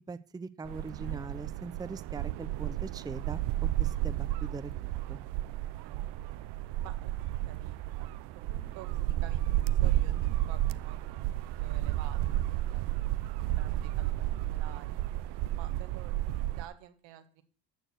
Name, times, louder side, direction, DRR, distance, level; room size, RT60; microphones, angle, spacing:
voice 1, 0.1-5.2, right 3 dB, 10° right, 13 dB, 0.5 m, -42 dB
sound 1, 0.7-16.7, right 14 dB, 70° right, 0.6 m, -32 dB
voice 2, 0.9-1.2 5.5-5.6 5.8-6.1 6.8-7.1 7.4-8.1 8.5-11.2 11.6-13.0 13.6-15.0 15.5-17.4, right 12 dB, 85° right, 7 dB, 1.7 m, -50 dB
13.5 x 4.5 x 7.8 m, 0.42 s
cardioid pair, 95°, 42 cm